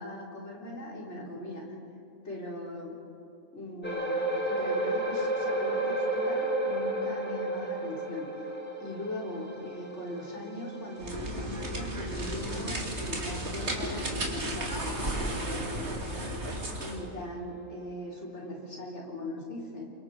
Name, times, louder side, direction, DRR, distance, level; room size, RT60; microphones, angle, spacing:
voice 1, 0.0-1.7 2.2-2.9 3.5-8.3 8.8-16.3 16.8-19.9, left 1 dB, 50° left, -2 dB, 4.3 m, -40 dB
sound 1, 3.8-16.5 16.9-17.1 17.6-17.7, right 1 dB, 5° left, 2.4 m, -34 dB
sound 2, 11.0-17.0, right 1 dB, 50° right, 3.0 m, -34 dB
28.5 x 24.0 x 4.9 m, 2.8 s
omnidirectional pair, 1.5 m